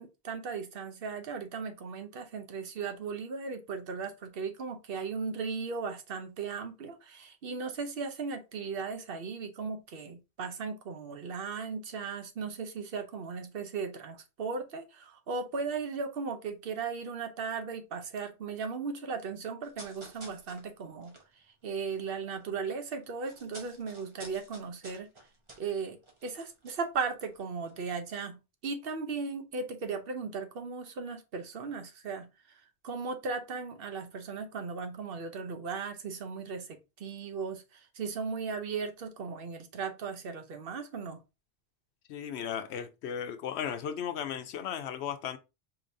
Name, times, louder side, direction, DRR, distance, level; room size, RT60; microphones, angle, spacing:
voice 1, 0.0-21.2 21.6-25.1 25.6-32.3 32.8-41.2, right 5 dB, 65° right, 0.9 m, -37 dB
sound 1, 19.6-22.5 22.8-27.4 27.6-27.8, right 1 dB, 30° right, 1.0 m, -52 dB
voice 2, 42.1-45.4, left 8 dB, 90° left, 0.9 m, -36 dB
5.0 x 2.8 x 2.6 m
omnidirectional pair, 1.1 m